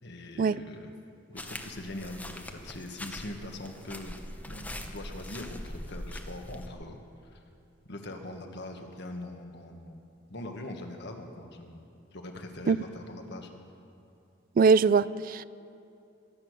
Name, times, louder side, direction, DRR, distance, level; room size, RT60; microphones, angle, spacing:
voice 1, 0.0-0.9 1.3-4.2 4.5-7.4 7.9-10.0 10.3-13.5, left 1 dB, 60° left, 4 dB, 1.5 m, -42 dB
sound 1, 1.4-6.7, left 1 dB, 10° left, 0.9 m, -42 dB
voice 2, 14.6-15.4, right 5 dB, 45° right, 18 dB, 0.3 m, -22 dB
23.0 x 8.5 x 6.5 m, 2.5 s
head